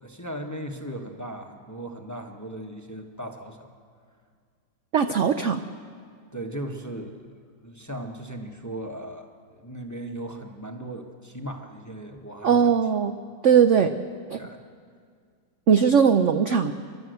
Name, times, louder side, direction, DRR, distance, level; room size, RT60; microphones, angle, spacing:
voice 1, 0.0-3.7 6.3-7.3 7.6-12.8 13.7-13.9 14.3-14.6, right 1 dB, 10° left, 3 dB, 1.0 m, -37 dB
voice 2, 4.9-5.6 12.4-13.1 13.4-13.9 14.3-14.4 15.7-16.7, right 7 dB, 60° right, 8 dB, 0.7 m, -19 dB
28.5 x 12.0 x 7.9 m, 2.1 s
omnidirectional pair, 2.0 m